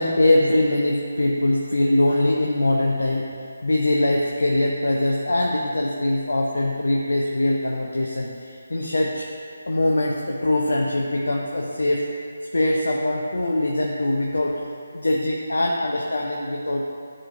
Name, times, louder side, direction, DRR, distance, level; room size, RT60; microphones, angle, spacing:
voice 1, 0.0-3.3 3.6-9.3 9.7-12.1 12.5-14.6 14.9-16.8, left 1 dB, 75° left, -1 dB, 0.6 m, -22 dB
11.0 x 4.4 x 2.5 m, 2.3 s
figure-of-eight pair, 150°, 0 cm